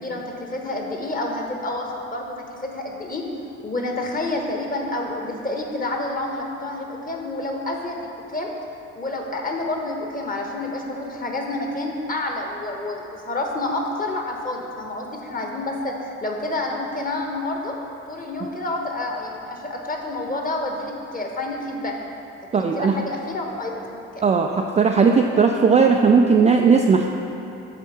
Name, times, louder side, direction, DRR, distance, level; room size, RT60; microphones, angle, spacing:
voice 1, 0.0-3.2 3.6-8.5 8.9-17.7 18.1-21.9 22.5-24.0, left 2 dB, 20° left, 1 dB, 1.3 m, -29 dB
voice 2, 22.5-23.0 24.2-27.1, right 5 dB, 20° right, 2 dB, 0.4 m, -17 dB
7.4 x 4.2 x 5.6 m, 2.9 s
hypercardioid pair, 50°, 37 cm